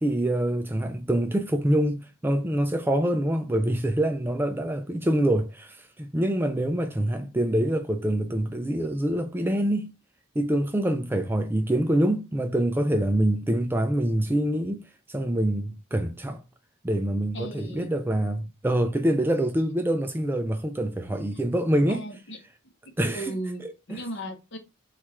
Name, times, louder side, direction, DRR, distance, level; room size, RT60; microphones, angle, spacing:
voice 1, 0.0-9.9 10.4-16.4 16.8-22.0 23.0-23.4 23.6-24.0, right 1 dB, 10° right, 0.3 m, -25 dB
voice 2, 17.3-17.9 21.9-22.4 22.8-23.6 23.9-24.6, right 1 dB, 55° left, 0.9 m, -36 dB
4.5 x 2.4 x 4.3 m
head